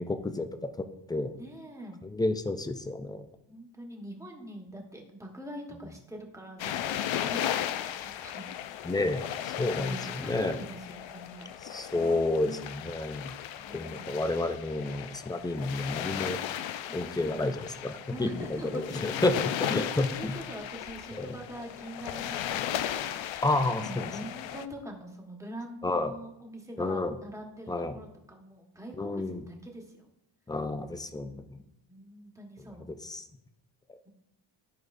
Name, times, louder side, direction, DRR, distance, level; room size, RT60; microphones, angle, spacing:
voice 1, 0.0-1.3 2.0-3.2 8.8-10.6 11.6-13.3 13.7-16.4 16.9-20.4 21.2-21.4 23.4-24.1 25.8-26.1 26.8-27.2 27.7-27.9 29.0-29.4 30.5-31.6 33.0-33.2, left 2 dB, 10° left, 9 dB, 0.3 m, -30 dB
voice 2, 1.3-2.0 3.5-8.4 8.7-8.8 9.6-11.5 11.9-12.7 13.5-14.2 16.8-17.5 18.1-19.4 20.1-23.4 23.8-30.1 31.9-32.9 34.0-34.1, equal, 5° right, 1 dB, 1.2 m, -44 dB
sound 1, 6.6-24.7, left 11 dB, 70° left, 0.5 m, -36 dB
13.0 x 4.7 x 2.5 m, 0.82 s
cardioid pair, 120°, 49 cm